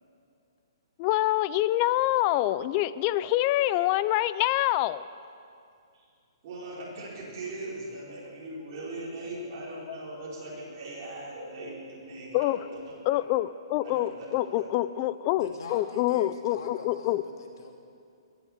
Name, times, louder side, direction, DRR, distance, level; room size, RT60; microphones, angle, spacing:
voice 1, 1.0-5.0 12.3-12.6 13.1-17.2, left 15 dB, 25° left, 16 dB, 0.4 m, -26 dB
voice 2, 6.4-13.2 13.8-14.6, right 2 dB, 35° right, -6 dB, 4.8 m, -40 dB
voice 3, 15.3-17.7, left 4 dB, 60° left, 2 dB, 2.5 m, -42 dB
21.5 x 7.2 x 8.1 m, 2.4 s
hypercardioid pair, 165°, 3 cm